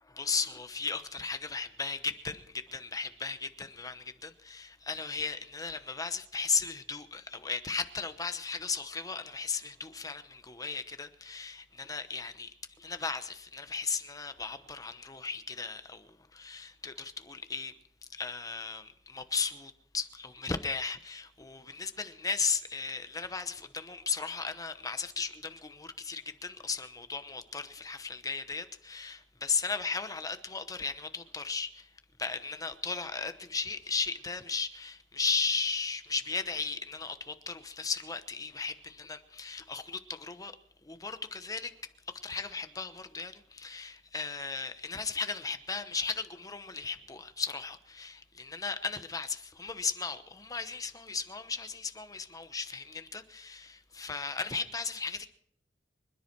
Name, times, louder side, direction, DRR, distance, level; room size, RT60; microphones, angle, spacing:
voice 1, 0.2-17.7 18.1-31.9 32.2-40.5 40.8-41.7 42.2-55.3, left 4 dB, 20° left, 1.0 m, -36 dB
25.5 x 10.5 x 4.6 m
head